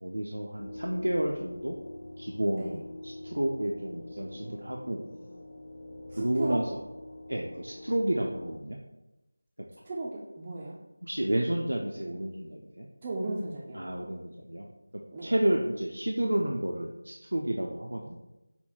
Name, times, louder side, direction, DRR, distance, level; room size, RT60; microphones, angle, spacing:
voice 1, 0.0-1.8 2.2-2.8 3.0-5.0 6.2-6.6 7.3-8.8 11.0-12.9 13.8-14.7 15.2-18.1, right 1 dB, 80° right, 0 dB, 0.5 m, -30 dB
sound 1, 0.6-8.6, left 1 dB, 40° left, 0.5 m, -45 dB
voice 2, 6.1-6.6 9.8-10.8 13.0-13.8 15.1-15.3, right 2 dB, 20° right, -6 dB, 0.4 m, -35 dB
5.7 x 2.2 x 3.8 m, 0.99 s
figure-of-eight pair, 170°, 0 cm